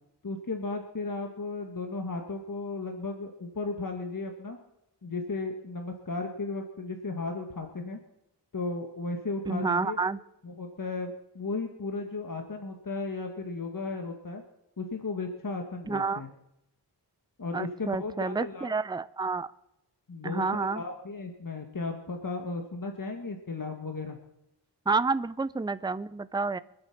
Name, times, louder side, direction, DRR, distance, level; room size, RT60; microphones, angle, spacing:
voice 1, 0.2-4.6 5.0-8.0 8.5-10.0 10.4-14.4 14.8-16.3 17.4-18.7 20.1-20.4 20.7-24.2, left 3 dB, 50° left, 4 dB, 1.7 m, -35 dB
voice 2, 9.5-10.2 15.9-16.2 17.5-19.5 20.2-20.8 24.9-26.6, right 4 dB, 10° right, 15 dB, 0.5 m, -29 dB
24.5 x 8.2 x 5.9 m, 0.85 s
wide cardioid pair, 60°, 43 cm